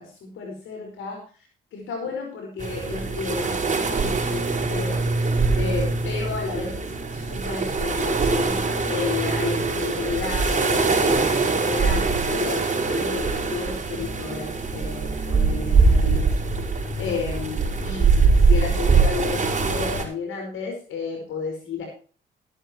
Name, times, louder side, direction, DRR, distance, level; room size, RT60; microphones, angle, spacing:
voice 1, 0.0-16.4 16.8-21.9, left 5 dB, 80° left, 1 dB, 5.0 m, -32 dB
sound 1, 2.6-20.0, right 4 dB, 35° right, 4.9 m, -22 dB
14.5 x 12.5 x 3.0 m, 0.39 s
cardioid pair, 90°, 20 cm